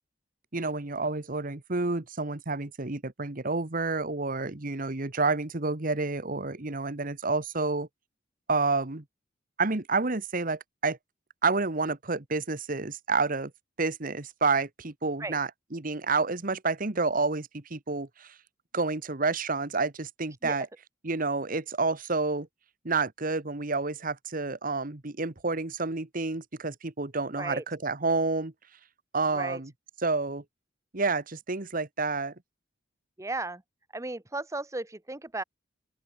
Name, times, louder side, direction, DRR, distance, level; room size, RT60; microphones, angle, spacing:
voice 1, 0.5-7.9 8.5-9.0 9.6-11.0 11.4-13.5 13.8-18.3 18.7-20.7 21.0-22.5 22.8-28.5 29.1-29.7 30.0-30.4 30.9-32.3, right 3 dB, 50° right, 1.5 m, -29 dB
voice 2, 33.2-33.6 33.9-35.4, right 2 dB, 15° right, 0.9 m, -35 dB
open air
head